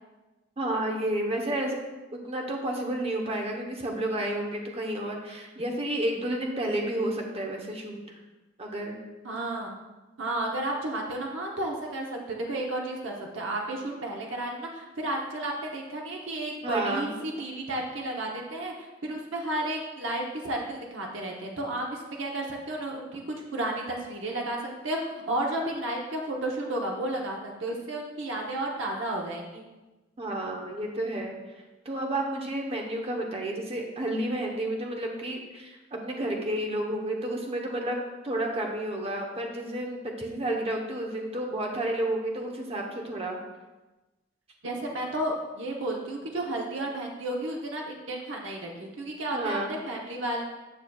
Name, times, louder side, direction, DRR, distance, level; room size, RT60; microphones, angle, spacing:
voice 1, 0.6-1.8 2.1-8.0 8.6-9.0 16.6-17.1 30.2-31.4 31.8-38.0 38.2-43.4 49.3-49.7, right 1 dB, 30° right, 1 dB, 0.9 m, -31 dB
voice 2, 9.2-9.7 10.2-12.2 12.5-25.0 25.3-29.6 44.6-50.4, right 1 dB, 80° right, -1 dB, 0.9 m, -32 dB
9.1 x 6.2 x 2.3 m, 1.1 s
head